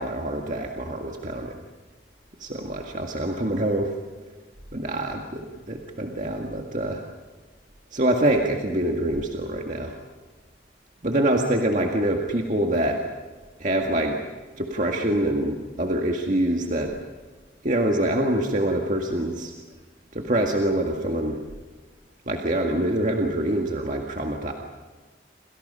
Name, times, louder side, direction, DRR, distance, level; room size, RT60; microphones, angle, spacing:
voice 1, 0.0-1.5 2.4-4.0 4.7-7.0 7.9-10.0 11.0-13.0 13.6-14.2 14.6-17.0 17.6-19.5 20.1-21.4 22.3-24.5, right 1 dB, 45° right, 1 dB, 1.9 m, -25 dB
29.0 x 27.0 x 5.6 m, 1.4 s
head